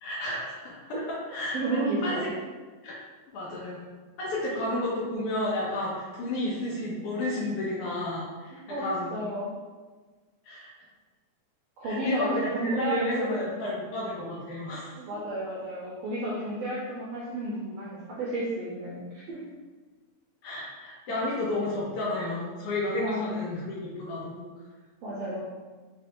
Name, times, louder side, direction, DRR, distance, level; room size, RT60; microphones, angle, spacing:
voice 1, 0.0-2.2 2.8-2.9 3.3-3.8 4.2-9.1 10.4-10.7 11.8-15.0 20.4-24.5, left 2 dB, 80° left, -5 dB, 1.2 m, -32 dB
voice 2, 1.5-2.3 4.4-4.7 8.7-8.8 9.1-9.5 11.8-13.5 15.0-19.4 23.0-23.4 25.0-25.4, right 1 dB, 80° right, -6 dB, 1.5 m, -32 dB
4.4 x 3.2 x 2.9 m, 1.4 s
omnidirectional pair, 3.5 m